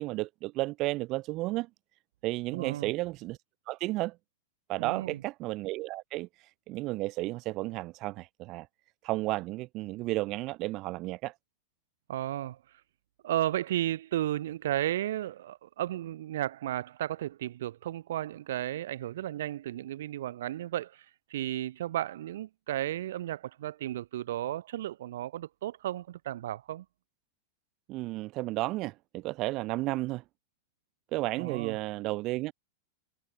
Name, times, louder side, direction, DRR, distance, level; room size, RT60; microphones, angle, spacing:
voice 1, 0.0-1.7 2.2-3.4 3.7-4.2 4.7-8.7 9.0-11.3 27.9-30.2 31.1-32.5, right 19 dB, 45° right, 0.4 m, -33 dB
voice 2, 2.5-2.9 4.8-5.2 12.1-12.6 13.2-21.1 21.3-26.9 31.4-31.8, right 13 dB, 75° right, 1.8 m, -34 dB
hypercardioid pair, 120°, 0 cm